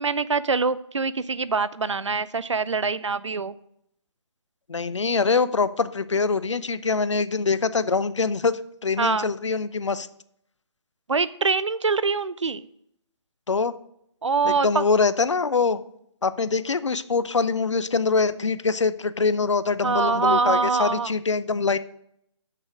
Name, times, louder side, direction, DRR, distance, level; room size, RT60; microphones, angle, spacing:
voice 1, 0.0-3.5 9.0-9.3 11.1-12.7 14.2-14.9 19.8-21.1, right 4 dB, 80° right, 16 dB, 0.5 m, -24 dB
voice 2, 4.7-10.1 13.5-13.7 14.4-15.8 16.2-21.8, left 4 dB, 75° left, 15 dB, 0.6 m, -24 dB
7.6 x 6.3 x 6.2 m, 0.73 s
figure-of-eight pair, 140°, 15 cm